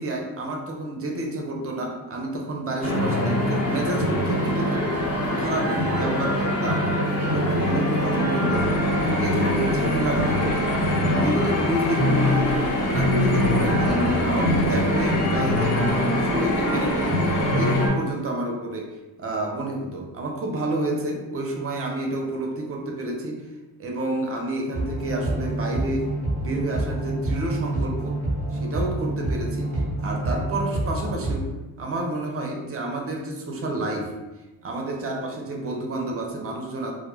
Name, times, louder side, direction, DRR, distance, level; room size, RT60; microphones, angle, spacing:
voice 1, 0.0-6.9 7.2-8.8 9.2-10.8 11.1-18.9 19.2-23.4 23.8-26.1 26.4-28.2 28.5-31.5 31.8-34.1 34.6-36.9, right 2 dB, 30° right, 1 dB, 0.5 m, -29 dB
sound 1, 2.8-17.9, left 1 dB, 30° left, 0.9 m, -23 dB
sound 2, 8.5-17.8, left 3 dB, 60° left, 0.5 m, -36 dB
sound 3, 24.7-31.4, right 1 dB, 5° left, 1.0 m, -27 dB
2.2 x 2.2 x 3.0 m, 1.1 s
cardioid pair, 95°, 49 cm